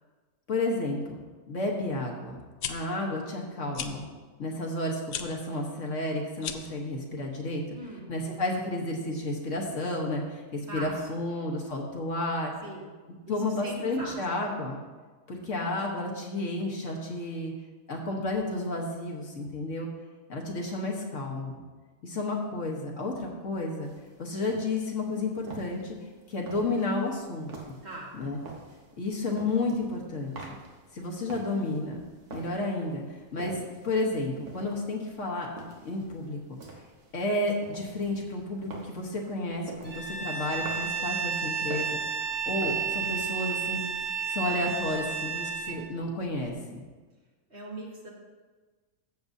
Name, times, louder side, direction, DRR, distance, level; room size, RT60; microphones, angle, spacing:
voice 1, 0.5-1.2 1.5-2.4 2.7-4.1 4.4-7.6 8.1-12.5 13.3-14.8 15.3-17.5 17.9-19.9 20.3-21.6 22.0-23.9 24.2-26.0 26.3-27.8 28.2-28.4 29.0-30.5 30.9-32.0 32.3-35.5 35.8-36.4 37.1-41.9 42.2-43.8 44.3-46.8, left 2 dB, 60° left, 0 dB, 1.5 m, -31 dB
sound 1, 2.4-2.7 3.7-3.9 5.1-5.3 6.4-6.8, left 9 dB, 75° left, 1.1 m, -34 dB
voice 2, 7.8-8.1 10.7-11.1 12.6-12.9 13.3-14.2 27.8-28.1 47.5-48.1, right 2 dB, 45° right, -3 dB, 1.8 m, -40 dB
sound 2, 23.8-43.4, right 3 dB, 80° right, 1.8 m, -48 dB
Bowed string instrument, 39.8-45.8, right 6 dB, 60° right, 1.9 m, -32 dB
14.5 x 7.0 x 2.7 m, 1.3 s
omnidirectional pair, 1.6 m